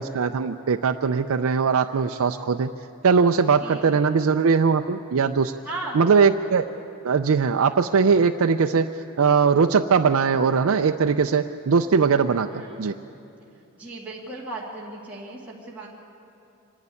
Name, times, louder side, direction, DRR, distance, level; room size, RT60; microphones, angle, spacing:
voice 1, 0.0-2.7 3.0-5.5 5.9-6.7 7.0-12.9, right 5 dB, 70° right, 6 dB, 0.5 m, -20 dB
voice 2, 3.6-4.3 5.6-6.0 12.5-12.9 13.7-15.9, right 2 dB, 5° right, -6 dB, 2.0 m, -36 dB
25.0 x 11.0 x 9.8 m, 2.8 s
head